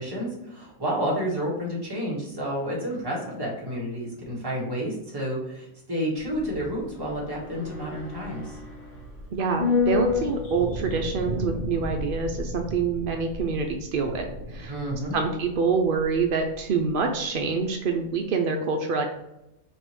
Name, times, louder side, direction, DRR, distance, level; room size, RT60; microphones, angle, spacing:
voice 1, 0.0-8.6 14.7-15.2, equal, 15° right, -5 dB, 1.4 m, -30 dB
sound 1, 6.2-16.6 16.9-17.0, left 4 dB, 90° left, 1.8 m, -32 dB
voice 2, 9.3-14.7 15.1-19.0, right 4 dB, 80° right, 3 dB, 0.4 m, -26 dB
5.2 x 2.9 x 3.1 m, 0.88 s
omnidirectional pair, 1.5 m